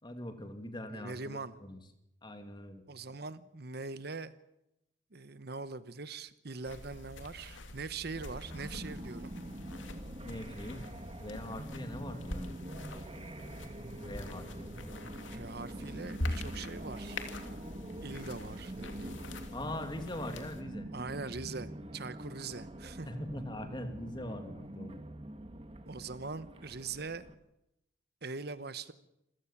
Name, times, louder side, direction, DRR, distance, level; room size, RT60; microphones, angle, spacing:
voice 1, 0.0-1.8 2.2-2.8 10.2-10.8 11.2-12.5 14.0-14.7 19.5-20.9 23.1-25.0, left 1 dB, 25° left, 7 dB, 2.6 m, -42 dB
voice 2, 0.9-1.6 2.9-4.3 5.1-9.4 15.3-17.2 18.0-19.2 20.9-23.1 25.9-27.3 28.2-28.9, right 4 dB, 55° right, 14 dB, 1.0 m, -42 dB
sound 1, 6.6-20.6, left 1 dB, 85° left, 2.9 m, -44 dB
sound 2, 8.1-27.3, right 1 dB, 30° right, 1.6 m, -45 dB
27.5 x 17.0 x 7.3 m, 0.83 s
head